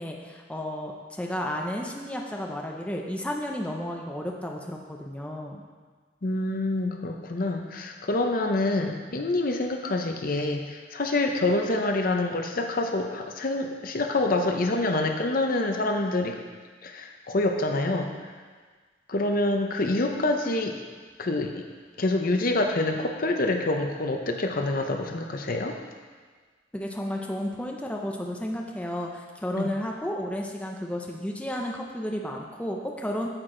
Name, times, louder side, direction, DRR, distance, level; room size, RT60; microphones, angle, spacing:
voice 1, 0.0-5.6 26.7-33.3, equal, 5° left, 0 dB, 0.6 m, -32 dB
voice 2, 6.2-16.4 16.8-18.3 19.1-20.8 21.2-21.7 22.0-25.8 29.5-29.7, left 2 dB, 50° left, 3 dB, 0.7 m, -26 dB
8.9 x 8.0 x 3.8 m, 1.5 s
head